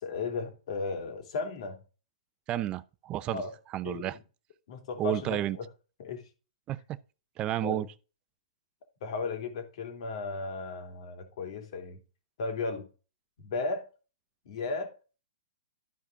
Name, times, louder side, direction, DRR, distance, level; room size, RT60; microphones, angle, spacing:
voice 1, 0.0-1.8 3.3-3.5 3.8-4.1 4.7-5.7 6.0-6.3 7.6-7.9 9.0-12.0 12.4-12.9 13.4-13.8 14.4-14.9, left 4 dB, 60° left, 2.9 m, -35 dB
voice 2, 2.5-3.4 3.7-4.2 5.0-5.6 6.7-7.0 7.4-7.9, right 13 dB, 30° right, 0.6 m, -31 dB
13.0 x 5.0 x 3.8 m
hypercardioid pair, 125°, 4 cm